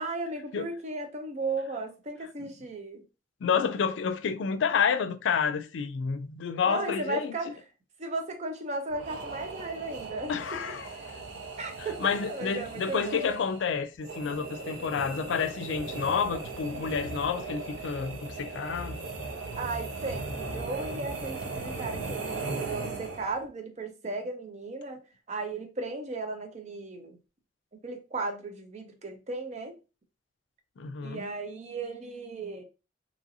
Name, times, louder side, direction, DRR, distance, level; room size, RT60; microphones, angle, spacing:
voice 1, 0.0-3.0 6.6-7.5 8.0-10.6 11.6-13.3 19.6-25.0 25.3-27.2 27.8-29.7 31.0-32.6, right 3 dB, 35° right, 0.5 m, -35 dB
voice 2, 3.4-7.4 10.3-10.9 12.0-19.0 30.8-31.2, left 6 dB, 75° left, 0.4 m, -29 dB
sound 1, 8.9-23.5, right 3 dB, 85° right, 0.6 m, -38 dB
2.9 x 2.6 x 2.6 m
head